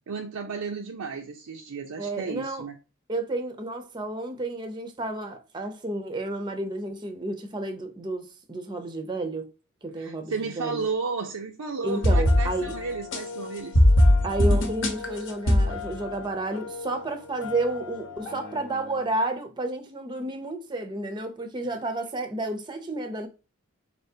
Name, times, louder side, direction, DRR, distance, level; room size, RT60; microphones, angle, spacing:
voice 1, 0.1-2.7 9.9-13.8, right 4 dB, 85° right, 0.6 m, -33 dB
voice 2, 2.0-2.6 3.1-9.5 9.8-10.9 11.8-12.7 14.2-23.3, right 2 dB, 20° right, 0.6 m, -31 dB
sound 1, 11.9-17.1 17.4-18.9, left 1 dB, 55° left, 0.9 m, -24 dB
4.3 x 3.4 x 2.7 m
head